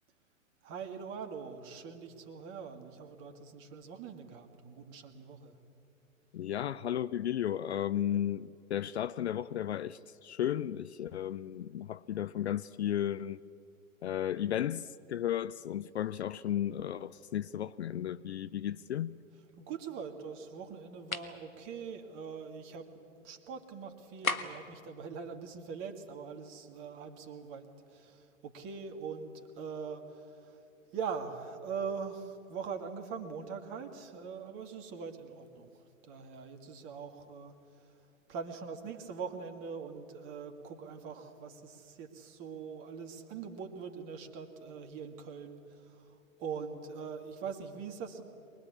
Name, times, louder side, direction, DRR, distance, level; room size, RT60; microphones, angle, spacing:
voice 1, 0.6-5.6 19.3-30.6 30.9-38.0 38.3-48.2, right 6 dB, 30° right, 2.0 m, -42 dB
voice 2, 6.3-13.4 14.0-19.2, left 11 dB, 55° left, 0.5 m, -34 dB
sound 1, 21.1-21.4 24.2-24.7, left 4 dB, 80° left, 1.5 m, -34 dB
24.0 x 20.5 x 8.4 m
figure-of-eight pair, 110°, 41 cm